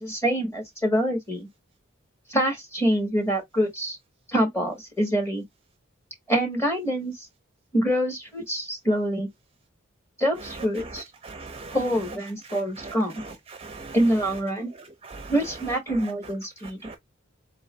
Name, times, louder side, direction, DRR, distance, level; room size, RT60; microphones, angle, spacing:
voice 1, 0.0-1.5 2.3-4.0 4.3-5.4 6.3-7.1 7.7-9.3 10.2-11.0 11.7-13.2 13.9-14.7 15.3-16.8, equal, 15° left, 1.5 m, -25 dB
voice 2, 11.2-11.8 13.2-13.3 13.6-14.0 15.1-15.3 16.8-17.0, right 3 dB, 30° right, 0.6 m, -40 dB
3.8 x 3.0 x 3.1 m
head